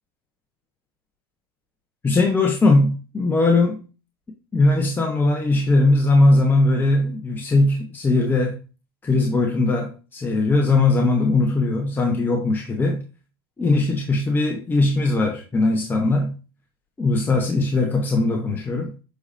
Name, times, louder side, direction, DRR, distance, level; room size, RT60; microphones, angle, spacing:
voice 1, 2.0-3.8 4.5-8.6 9.0-13.0 13.6-16.3 17.0-18.9, left 2 dB, 15° left, 1.1 m, -19 dB
8.0 x 4.9 x 2.7 m
supercardioid pair, 115°, 13 cm